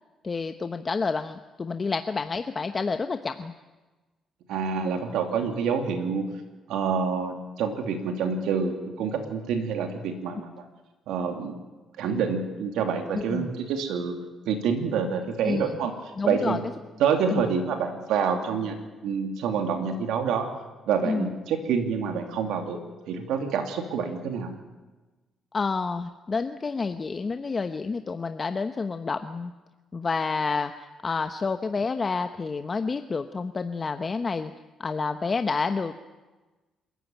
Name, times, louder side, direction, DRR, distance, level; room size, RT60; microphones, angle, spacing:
voice 1, 0.2-3.5 13.1-13.5 15.4-15.7 16.2-16.6 17.3-17.4 21.0-21.3 25.5-29.5 29.9-34.5 34.8-36.0, left 4 dB, 35° left, 8 dB, 1.0 m, -29 dB
voice 2, 4.5-6.3 6.7-10.5 11.1-11.5 12.0-14.1 14.5-15.9 16.2-16.6 17.0-18.8 19.0-20.5 20.9-22.8 23.1-24.6, right 6 dB, 90° right, 5 dB, 2.8 m, -27 dB
27.0 x 14.5 x 9.2 m, 1.2 s
cardioid pair, 90°, 0 cm